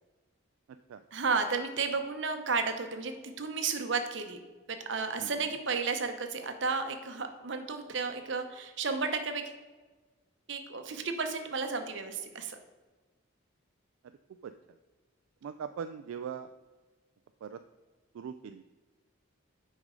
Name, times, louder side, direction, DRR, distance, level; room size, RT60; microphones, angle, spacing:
voice 1, 1.1-4.4 4.7-9.4 10.5-12.6, right 4 dB, 60° right, 7 dB, 0.8 m, -33 dB
voice 2, 5.2-5.5 14.4-14.5 15.4-16.5 17.4-17.6 18.1-18.6, right 7 dB, 75° right, 9 dB, 0.3 m, -40 dB
7.9 x 5.4 x 3.7 m, 1.3 s
head